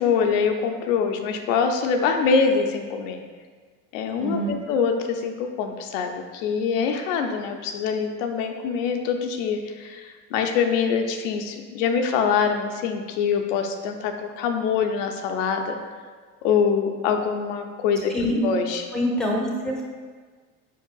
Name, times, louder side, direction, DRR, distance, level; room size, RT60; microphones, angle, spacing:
voice 1, 0.0-3.2 3.9-15.8 16.4-18.1 18.4-18.8, left 6 dB, 85° left, 5 dB, 0.5 m, -24 dB
voice 2, 4.2-4.5 18.1-18.4 18.9-19.8, equal, ahead, -1 dB, 0.9 m, -25 dB
4.7 x 4.5 x 2.3 m, 1.5 s
supercardioid pair, 90°, 37 cm